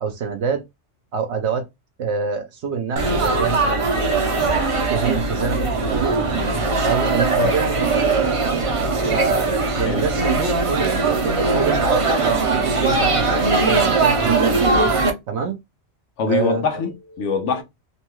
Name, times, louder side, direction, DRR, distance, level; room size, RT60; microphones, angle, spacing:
voice 1, 0.0-0.6 1.1-1.7 2.0-4.3 4.9-6.2 6.8-8.6 9.1-9.5 9.8-14.7 15.3-15.6 16.3-16.6, right 5 dB, 70° right, 0.9 m, -26 dB
Laughter / Chatter / Crowd, 3.0-15.1, right 3 dB, 40° right, 0.5 m, -20 dB
voice 2, 16.2-17.6, left 5 dB, 80° left, 1.1 m, -23 dB
2.9 x 2.2 x 3.0 m
omnidirectional pair, 1.2 m